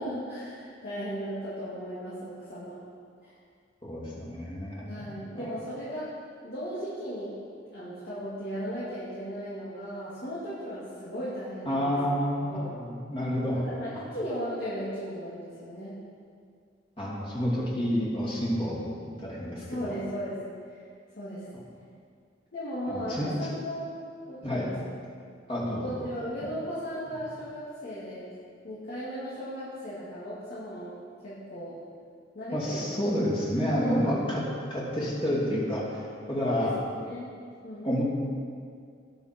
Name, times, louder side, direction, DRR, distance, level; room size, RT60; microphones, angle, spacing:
voice 1, 0.0-2.8 3.2-3.3 4.9-6.1 6.4-7.3 7.7-12.0 12.5-12.7 13.5-16.0 19.6-20.4 20.7-20.8 21.1-21.5 22.5-23.9 24.3-24.9 25.8-28.3 28.6-31.8 32.3-32.8 33.7-34.2 36.4-37.3 37.6-37.9, equal, 60° left, -11 dB, 2.5 m, -36 dB
voice 2, 3.8-5.5 11.6-13.6 13.9-14.0 17.0-18.8 19.2-19.9 22.9-23.3 24.4-24.7 25.5-25.9 32.5-34.4 34.7-36.7 37.8-38.0, equal, 30° left, -6 dB, 2.9 m, -29 dB
18.5 x 6.6 x 4.5 m, 2.2 s
head